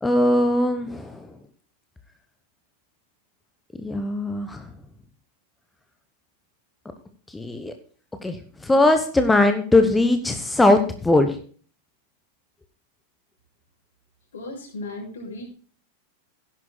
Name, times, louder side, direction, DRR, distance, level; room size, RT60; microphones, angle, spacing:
voice 1, 0.0-1.3 3.8-4.7 7.3-7.7 8.2-11.4, left 2 dB, 10° left, 7 dB, 1.1 m, -20 dB
voice 2, 14.3-15.5, left 2 dB, 65° left, 0 dB, 6.8 m, -36 dB
17.0 x 10.0 x 2.2 m, 0.43 s
figure-of-eight pair, 90°, 0 cm